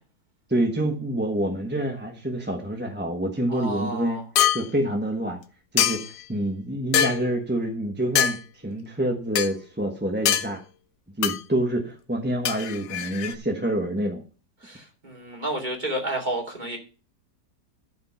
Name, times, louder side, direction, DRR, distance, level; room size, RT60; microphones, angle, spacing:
voice 1, 0.5-4.2 4.5-5.4 5.7-8.4 8.6-10.6 11.2-14.2, right 1 dB, 10° right, 3 dB, 0.9 m, -27 dB
voice 2, 3.5-4.2 14.6-16.8, right 1 dB, 25° right, 0 dB, 2.7 m, -31 dB
sound 1, 4.4-4.6 5.8-6.2 6.9-7.2 8.2-8.4 9.4-9.5 10.3-10.5 11.2-11.4 12.4-13.3, left 10 dB, 65° left, 0.9 m, -23 dB
12.0 x 5.2 x 5.6 m, 0.36 s
omnidirectional pair, 1.9 m